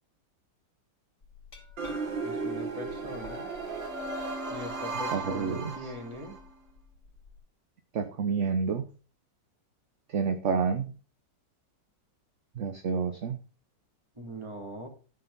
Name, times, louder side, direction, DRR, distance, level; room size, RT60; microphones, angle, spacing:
Glass, 1.2-7.4, left 1 dB, 40° left, 3.2 m, -46 dB
sound 1, 1.8-6.4, right 4 dB, 90° right, 2.3 m, -36 dB
voice 1, 2.2-3.5 4.5-6.4 14.2-14.9, left 1 dB, 15° right, 1 dB, 3.1 m, -41 dB
voice 2, 5.1-5.9 7.9-8.8 10.1-10.8 12.6-13.4, right 5 dB, 50° right, 8 dB, 1.0 m, -29 dB
13.0 x 6.9 x 4.1 m, 0.35 s
omnidirectional pair, 2.0 m